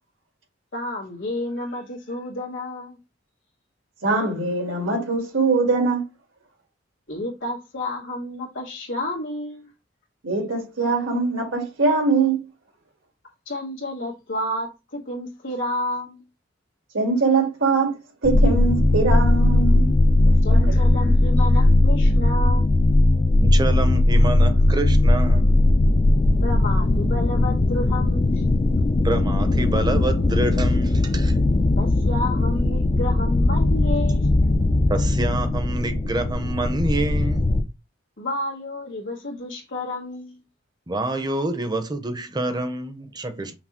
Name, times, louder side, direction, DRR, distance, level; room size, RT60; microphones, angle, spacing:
voice 1, 0.7-3.0 7.1-9.7 13.5-16.2 20.4-22.7 26.4-28.4 31.8-34.3 38.2-40.4, left 1 dB, 75° left, 1.8 m, -30 dB
voice 2, 4.0-6.0 10.2-12.4 16.9-17.9 18.2-19.9 20.2-20.6, right 4 dB, 90° right, 1.8 m, -22 dB
sound 1, 18.2-37.6, left 2 dB, 30° left, 0.4 m, -19 dB
voice 3, 23.3-25.6 29.0-31.4 34.9-37.4 40.9-43.5, right 2 dB, 20° right, 0.6 m, -27 dB
5.9 x 2.0 x 4.2 m
head